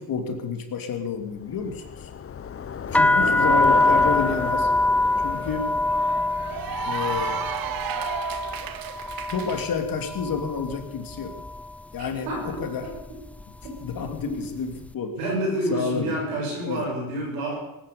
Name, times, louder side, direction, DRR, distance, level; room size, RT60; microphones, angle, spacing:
voice 1, 0.0-2.1 2.9-4.7 5.2-5.8 6.8-7.4 9.3-11.4 11.9-12.9 13.8-15.2 15.7-16.1 16.6-16.9, left 5 dB, 55° left, 6 dB, 2.9 m, -30 dB
Bicycle, 1.3-7.8, left 7 dB, 35° left, 0.9 m, -33 dB
sound 1, 2.9-10.8 11.1-11.7 12.4-12.7 12.9-14.4, left 2 dB, 5° left, 0.5 m, -24 dB
Cheering / Applause, 4.3-9.7, right 10 dB, 55° right, 1.3 m, -35 dB
voice 2, 12.3-12.6 15.2-17.5, right 1 dB, 90° right, -1 dB, 6.5 m, -28 dB
19.0 x 10.5 x 6.9 m, 0.89 s
supercardioid pair, 65°, 41 cm